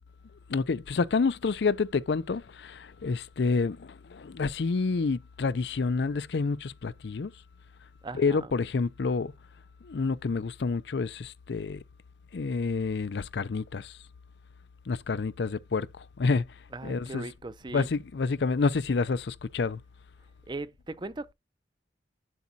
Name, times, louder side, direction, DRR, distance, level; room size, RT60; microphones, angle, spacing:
voice 1, 0.5-7.3 8.1-9.3 9.8-11.8 12.3-13.9 14.9-16.4 16.8-17.3 17.7-19.8, left 4 dB, 75° left, 0.5 m, -28 dB
voice 2, 8.0-8.5 16.7-17.9 20.5-21.3, right 2 dB, 25° right, 0.5 m, -39 dB
8.3 x 7.9 x 2.7 m
head